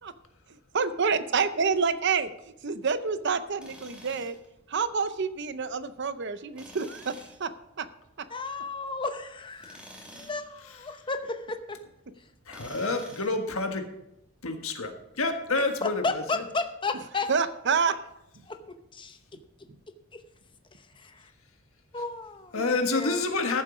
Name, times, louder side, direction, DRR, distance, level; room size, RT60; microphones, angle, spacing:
voice 1, 0.7-2.3 2.6-4.4 4.7-7.5 7.8-7.9 8.2-8.3 17.3-18.0 18.4-18.5, right 5 dB, 50° right, 13 dB, 0.6 m, -28 dB
Tools, 3.6-4.5 6.5-7.4 9.6-10.5 12.5-13.4, equal, 5° right, 2.4 m, -48 dB
voice 2, 8.3-9.8 10.1-11.8 15.8-17.3 18.5-19.2 20.1-20.2 21.0-21.2 21.9-23.2, left 3 dB, 20° left, 7 dB, 0.8 m, -33 dB
voice 3, 10.7-11.0 12.5-13.9 14.4-16.4 22.5-23.6, left 3 dB, 70° left, 5 dB, 1.5 m, -29 dB
13.5 x 7.5 x 5.0 m, 0.84 s
head